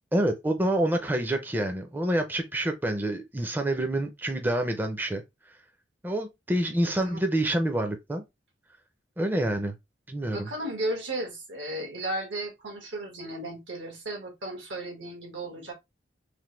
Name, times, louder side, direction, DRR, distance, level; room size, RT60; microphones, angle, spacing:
voice 1, 0.1-5.2 6.0-8.2 9.2-9.7 10.1-10.5, right 1 dB, 10° right, 0.4 m, -27 dB
voice 2, 10.3-15.7, right 1 dB, 90° right, 1.3 m, -34 dB
3.2 x 2.1 x 3.0 m
head